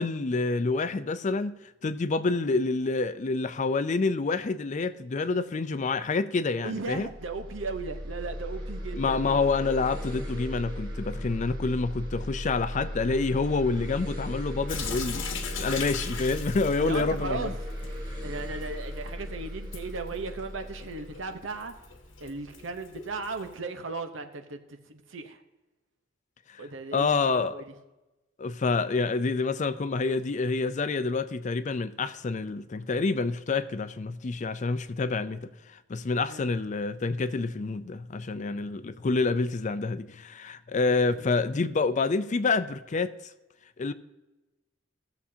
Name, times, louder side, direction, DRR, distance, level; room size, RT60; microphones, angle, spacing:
voice 1, 0.0-1.5 1.8-7.1 9.0-17.5 26.9-27.5 28.4-35.5 35.9-43.1 43.8-43.9, left 3 dB, 40° left, 0.4 m, -28 dB
voice 2, 6.6-9.4 16.8-17.5 18.2-21.7 22.2-25.4 26.6-27.7 36.3-36.5 41.1-41.3, right 3 dB, 80° right, 0.9 m, -36 dB
sound 1, 6.9-22.3, equal, 25° right, 2.1 m, -37 dB
Sink (filling or washing) / Drip, 14.7-23.6, left 5 dB, 75° left, 1.1 m, -41 dB
16.0 x 7.0 x 2.8 m
head